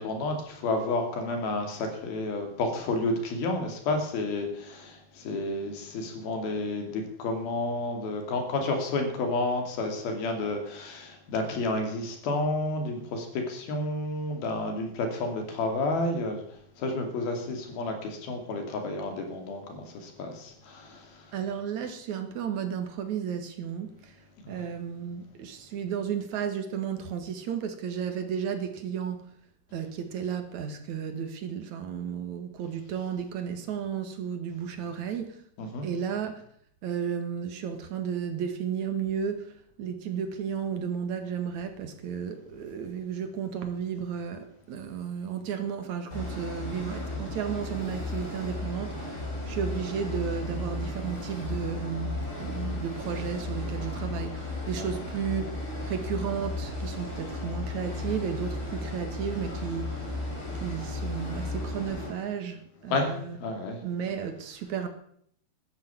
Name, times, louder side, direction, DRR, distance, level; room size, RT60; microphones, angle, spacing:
voice 1, 0.0-16.4 16.8-21.3 24.4-24.6 35.6-35.9 54.8-54.9 62.9-63.8, left 2 dB, 70° left, 4.5 m, -31 dB
voice 2, 21.3-24.2 24.5-29.3 29.7-35.4 35.8-36.5 36.8-49.1 49.5-55.5 55.8-60.2 60.5-63.4 63.8-64.9, right 7 dB, 55° right, 2.8 m, -33 dB
sound 1, 46.1-62.1, left 2 dB, 20° left, 5.2 m, -35 dB
13.5 x 10.5 x 8.5 m
omnidirectional pair, 4.5 m